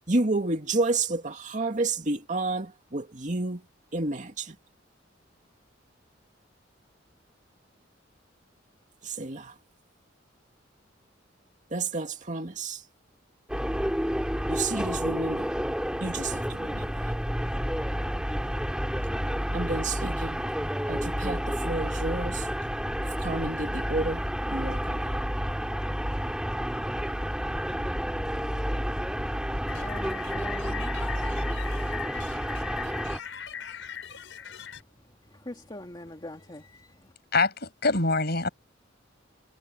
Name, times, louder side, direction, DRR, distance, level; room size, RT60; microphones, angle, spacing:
voice 1, 0.1-3.6 3.9-4.6 9.0-9.5 11.7-12.8 14.5-15.5 16.0-17.1 19.5-20.4 20.9-22.5 23.2-25.1, right 2 dB, 40° right, 2.4 m, -30 dB
sound 1, 13.5-33.2, equal, 5° right, 3.7 m, -30 dB
sound 2, 29.7-34.8, left 8 dB, 75° left, 5.5 m, -40 dB
voice 2, 29.7-30.9 35.5-36.7, left 1 dB, 25° left, 2.3 m, -42 dB
voice 3, 37.3-38.5, left 3 dB, 55° left, 6.2 m, -24 dB
head